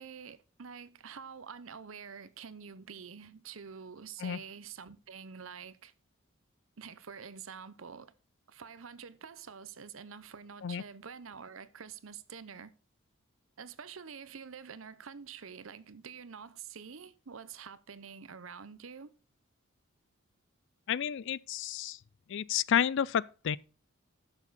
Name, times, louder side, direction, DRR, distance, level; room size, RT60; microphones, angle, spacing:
voice 1, 0.0-5.9 6.8-8.1 8.5-12.7 13.6-19.1, right 6 dB, 70° right, 0.8 m, -47 dB
voice 2, 20.9-22.0 22.3-23.6, left 8 dB, 65° left, 0.4 m, -30 dB
11.0 x 7.2 x 4.1 m
head